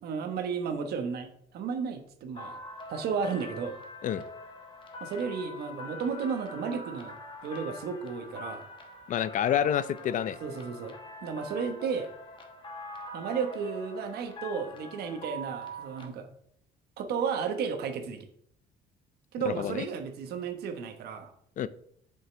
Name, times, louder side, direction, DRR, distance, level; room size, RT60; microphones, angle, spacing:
voice 1, 0.0-2.6 2.9-3.8 5.0-7.2 7.4-8.7 10.4-11.0 11.2-12.1 13.1-16.3 17.0-18.3 19.3-21.3, right 6 dB, 70° right, 7 dB, 1.2 m, -33 dB
sound 1, 2.3-16.1, left 1 dB, 30° left, 1.3 m, -44 dB
voice 2, 9.1-10.4 19.6-19.9 21.6-21.7, left 9 dB, 50° left, 16 dB, 0.4 m, -28 dB
7.3 x 5.6 x 3.3 m, 0.68 s
cardioid pair, 110°, 17 cm